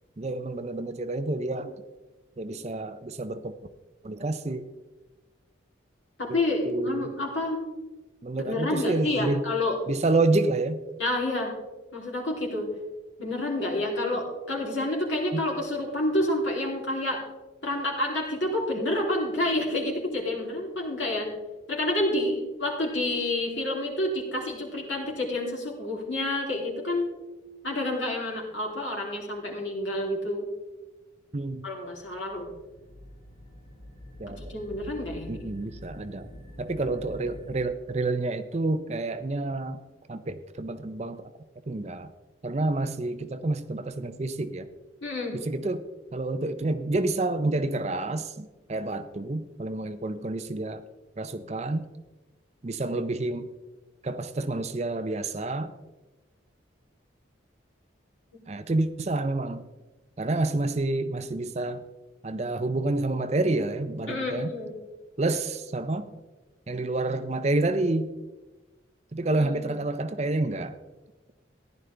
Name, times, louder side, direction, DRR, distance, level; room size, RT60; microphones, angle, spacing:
voice 1, 0.2-1.8 2.4-3.5 4.0-4.6 6.3-7.1 8.2-9.5 9.9-10.8 15.3-15.4 31.3-31.6 34.2-34.4 35.3-36.3 36.6-39.8 40.1-41.3 41.7-42.1 42.4-44.7 45.3-45.8 46.1-50.8 51.2-51.9 52.6-53.5 54.0-55.7 58.5-59.6 60.2-61.8 62.2-64.5 65.2-66.1 66.7-68.1 69.1-70.8, right 2 dB, 35° right, 11 dB, 0.5 m, -28 dB
voice 2, 6.2-7.6 8.4-9.8 11.0-11.5 11.9-12.7 13.2-17.2 17.6-21.3 21.7-27.1 27.6-30.4 31.6-32.5 34.5-35.5 45.0-45.4 64.1-64.7 69.3-69.7, left 1 dB, 75° left, -1 dB, 3.2 m, -29 dB
sound 1, 32.0-37.7, left 1 dB, 50° left, 2.4 m, -46 dB
15.0 x 11.0 x 3.4 m, 1.1 s
head